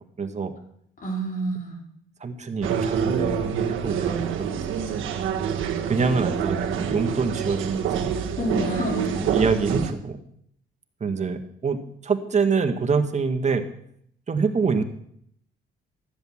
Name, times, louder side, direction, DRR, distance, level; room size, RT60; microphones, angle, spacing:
voice 1, 0.2-0.5 2.2-5.1 5.9-8.2 9.1-10.2 11.0-11.8 12.0-13.6 14.3-14.8, right 5 dB, 35° right, 7 dB, 1.6 m, -25 dB
voice 2, 1.0-1.8 8.4-9.3, right 1 dB, 45° left, -1 dB, 4.9 m, -28 dB
sound 1, 2.6-9.9, right 7 dB, 80° right, 1.6 m, -26 dB
13.5 x 7.9 x 7.3 m, 0.70 s
cardioid pair, 90°, 20 cm